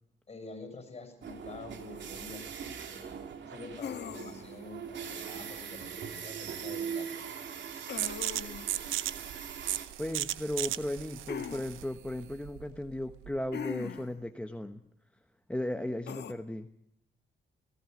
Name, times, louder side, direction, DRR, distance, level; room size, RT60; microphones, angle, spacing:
voice 1, 0.3-3.2 3.5-7.4, left 3 dB, 30° left, 7 dB, 6.9 m, -47 dB
sound 1, 1.2-9.8, right 7 dB, 65° right, 3.0 m, -41 dB
sound 2, 3.8-4.6 7.9-8.7 11.3-11.7 13.5-14.2 16.1-16.3, left 8 dB, 60° left, 1.8 m, -39 dB
sound 3, 8.0-13.5, right 13 dB, 85° right, 0.9 m, -36 dB
voice 2, 10.0-14.8 15.5-16.7, left 1 dB, 5° left, 7 dB, 1.1 m, -36 dB
18.0 x 17.0 x 9.1 m, 0.74 s
cardioid pair, 90°, 20 cm